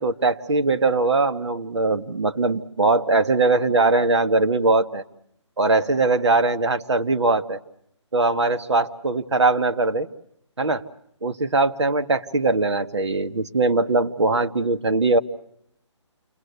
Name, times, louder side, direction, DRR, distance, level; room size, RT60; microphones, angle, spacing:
voice 1, 0.0-5.0 5.6-7.6 8.1-10.1 10.6-10.8 11.2-15.2, right 3 dB, 65° right, 7 dB, 1.6 m, -21 dB
29.0 x 22.0 x 8.1 m, 0.72 s
hypercardioid pair, 175°, 16 cm